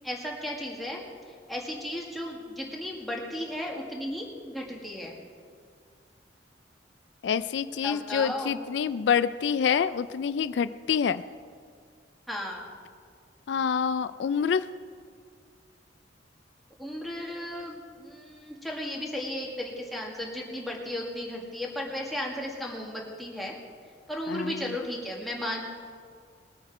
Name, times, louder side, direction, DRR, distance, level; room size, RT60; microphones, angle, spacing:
voice 1, 0.0-1.0 1.5-5.2 7.8-8.6 12.3-12.7 16.8-23.5 24.1-25.6, left 1 dB, ahead, -2 dB, 1.9 m, -35 dB
voice 2, 7.2-11.2 13.5-14.7 24.3-24.7, left 7 dB, 70° left, 14 dB, 0.4 m, -27 dB
20.0 x 8.7 x 4.9 m, 2.1 s
head